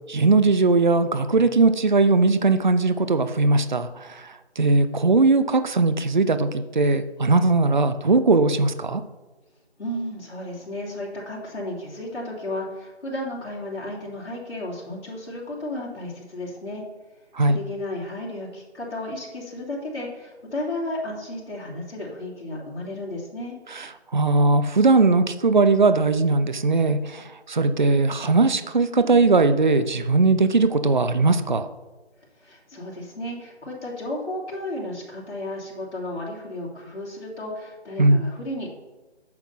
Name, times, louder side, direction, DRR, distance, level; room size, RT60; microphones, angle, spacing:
voice 1, 0.1-3.9 4.6-9.0 17.4-17.6 24.1-27.2 27.5-31.7 38.0-38.2, right 3 dB, 45° right, 11 dB, 0.6 m, -19 dB
voice 2, 9.8-16.8 17.4-23.6 32.4-38.7, left 1 dB, 80° left, -5 dB, 3.1 m, -33 dB
8.8 x 6.1 x 5.6 m, 1.1 s
figure-of-eight pair, 165°, 34 cm